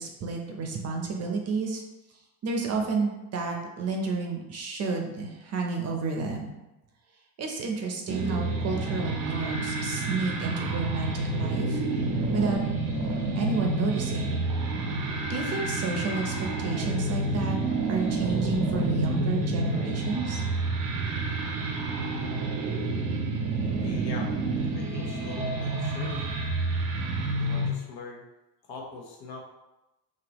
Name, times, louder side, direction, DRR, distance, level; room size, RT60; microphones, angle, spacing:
voice 1, 0.0-1.8 2.4-6.5 7.4-12.6 13.3-14.4 15.3-17.6 17.9-20.4, right 4 dB, 40° right, 1 dB, 0.7 m, -31 dB
sound 1, 8.1-27.7, right 2 dB, 90° right, 0.8 m, -29 dB
voice 2, 23.7-24.3 24.7-26.3 27.4-28.3 28.7-29.4, left 3 dB, 70° left, -1 dB, 1.1 m, -42 dB
5.2 x 2.7 x 3.0 m, 0.99 s
cardioid pair, 155°, 40 cm